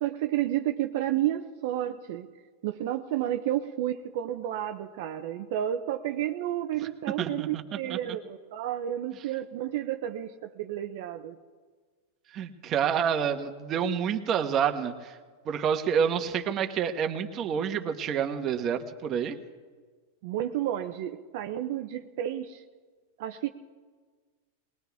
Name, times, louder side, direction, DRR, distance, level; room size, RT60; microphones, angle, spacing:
voice 1, 0.0-2.3 2.6-11.4 20.2-22.6 23.2-23.5, right 12 dB, 65° right, 5 dB, 0.8 m, -31 dB
voice 2, 7.2-7.6 7.9-8.0 12.3-15.2 15.4-19.4, right 7 dB, 35° right, 6 dB, 1.3 m, -28 dB
20.5 x 19.5 x 3.6 m, 1.5 s
hypercardioid pair, 125°, 0 cm